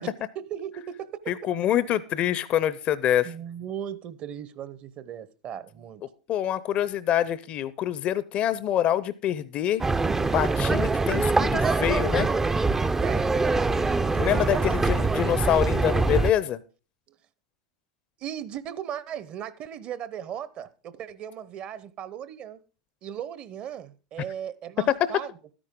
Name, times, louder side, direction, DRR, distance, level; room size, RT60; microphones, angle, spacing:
voice 1, 0.0-1.4 3.2-6.0 13.0-13.3 14.5-14.7 18.2-22.6 23.0-25.3, right 9 dB, 45° right, 0.9 m, -37 dB
voice 2, 1.3-3.3 6.3-9.8 10.3-12.3 14.1-16.6 25.0-25.1, left 11 dB, 40° left, 0.6 m, -25 dB
sound 1, 9.8-16.3, right 3 dB, 15° right, 0.5 m, -24 dB
12.5 x 10.0 x 3.7 m
hypercardioid pair, 100°, 3 cm